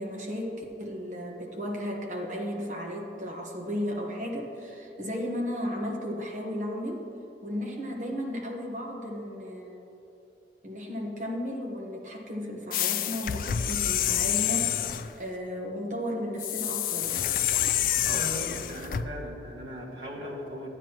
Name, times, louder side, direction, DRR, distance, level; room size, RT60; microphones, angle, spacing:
voice 1, 0.0-7.0 7.4-9.8 10.6-17.4, equal, 40° right, -1 dB, 1.2 m, -34 dB
sound 1, 12.7-15.1 16.4-19.1, left 11 dB, 50° left, 0.3 m, -28 dB
voice 2, 18.0-20.7, equal, 75° right, -4 dB, 1.9 m, -38 dB
13.0 x 9.1 x 3.0 m, 2.8 s
head